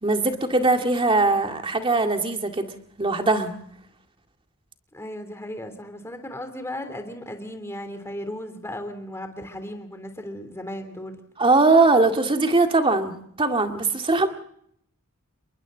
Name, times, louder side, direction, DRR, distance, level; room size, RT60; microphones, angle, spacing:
voice 1, 0.0-2.7 3.0-3.5 11.4-14.3, right 3 dB, 25° right, 5 dB, 2.1 m, -20 dB
voice 2, 4.9-11.2, left 1 dB, 10° left, 7 dB, 3.3 m, -36 dB
28.5 x 22.5 x 4.0 m, 0.68 s
head